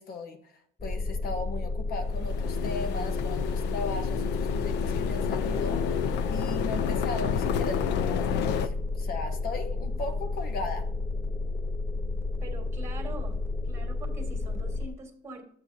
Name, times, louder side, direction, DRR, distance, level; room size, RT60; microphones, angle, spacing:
voice 1, 0.0-10.9, left 3 dB, 60° left, 6 dB, 1.2 m, -37 dB
sound 1, 0.8-14.9, left 3 dB, 15° left, 0.5 m, -31 dB
sound 2, 2.1-8.7, left 9 dB, 85° left, 0.5 m, -31 dB
voice 2, 12.4-13.4 13.6-15.4, right 2 dB, 15° right, 0 dB, 2.1 m, -43 dB
11.5 x 7.8 x 2.8 m, 0.65 s
cardioid pair, 110°, 17 cm